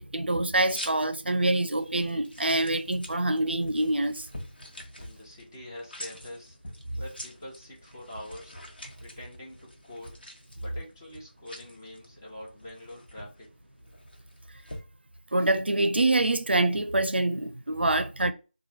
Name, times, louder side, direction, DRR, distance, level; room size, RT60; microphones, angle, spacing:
voice 1, 0.0-4.3 15.3-18.3, right 2 dB, 80° right, 0.4 m, -25 dB
sound 1, 0.7-14.8, left 1 dB, 65° left, 1.1 m, -46 dB
voice 2, 5.0-6.6 7.0-8.6 9.0-10.2 10.6-13.5, left 1 dB, 20° left, 0.8 m, -44 dB
3.0 x 2.2 x 4.1 m
figure-of-eight pair, 165°, 6 cm